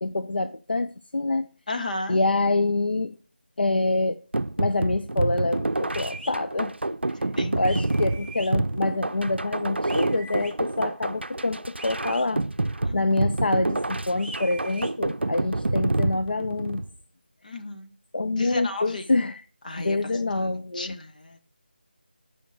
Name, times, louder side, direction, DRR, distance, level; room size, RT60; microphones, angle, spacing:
voice 1, 0.0-1.5 2.1-3.2 3.6-4.2 4.6-6.7 7.1-7.2 7.6-12.4 12.9-16.8 18.1-19.4 19.8-21.0, left 2 dB, 65° left, 0.6 m, -26 dB
voice 2, 1.7-2.2 7.4-7.7 12.8-13.2 17.4-17.9 18.4-19.0 19.6-20.0 20.7-21.4, left 2 dB, 45° left, 1.5 m, -33 dB
sound 1, 4.3-16.9, right 2 dB, 85° right, 0.5 m, -28 dB
sound 2, 5.9-6.3 7.6-8.5 9.8-10.5 11.8-12.3 14.1-14.9, right 1 dB, 5° right, 0.8 m, -40 dB
10.0 x 5.2 x 6.0 m
figure-of-eight pair, 165°, 6 cm